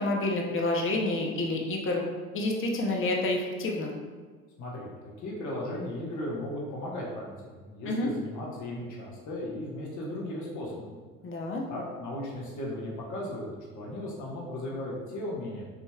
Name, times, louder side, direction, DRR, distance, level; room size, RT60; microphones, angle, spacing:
voice 1, 0.0-2.0 2.3-3.9 7.9-8.1 11.2-11.6, left 2 dB, 35° left, 0 dB, 0.8 m, -28 dB
voice 2, 4.6-11.0 11.7-13.5 13.7-15.6, left 1 dB, 60° left, -4 dB, 1.3 m, -36 dB
6.7 x 3.0 x 2.3 m, 1.5 s
hypercardioid pair, 70°, 34 cm